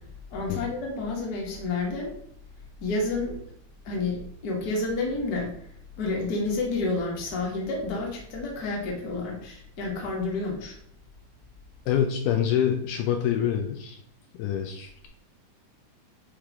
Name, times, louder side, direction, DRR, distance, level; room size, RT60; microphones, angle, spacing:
voice 1, 0.3-2.1 2.8-3.4 3.8-5.5 6.0-10.8, left 3 dB, 40° left, -1 dB, 1.4 m, -30 dB
voice 2, 11.9-14.0 14.4-15.1, left 9 dB, 80° left, 4 dB, 2.0 m, -26 dB
9.8 x 3.3 x 3.6 m, 0.67 s
omnidirectional pair, 4.0 m